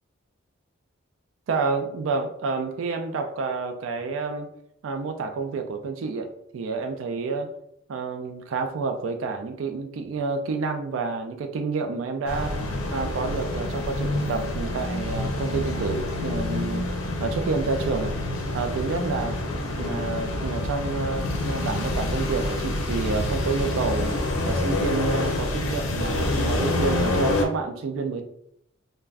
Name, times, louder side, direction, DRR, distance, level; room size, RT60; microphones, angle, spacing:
voice 1, 1.5-4.5 4.8-7.5 7.9-12.6 12.9-16.9 17.2-18.1 18.5-19.4 19.8-24.2 24.4-28.2, right 4 dB, 70° right, 6 dB, 0.3 m, -29 dB
sound 1, 12.3-27.5, left 2 dB, 90° left, 0.6 m, -27 dB
2.4 x 2.2 x 3.3 m, 0.73 s
head